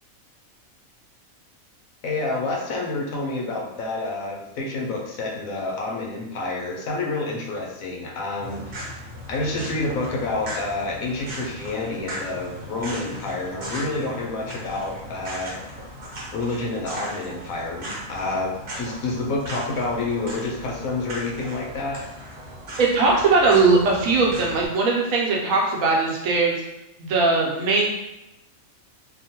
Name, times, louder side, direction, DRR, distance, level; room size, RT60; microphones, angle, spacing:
voice 1, 2.0-15.6 16.3-22.0, left 2 dB, 80° left, -1 dB, 1.1 m, -28 dB
sound 1, 8.4-24.7, equal, 50° right, 0.8 m, -37 dB
voice 2, 22.8-26.5 27.0-27.9, right 3 dB, 75° right, -2 dB, 1.0 m, -19 dB
2.9 x 2.1 x 2.7 m, 0.90 s
omnidirectional pair, 1.4 m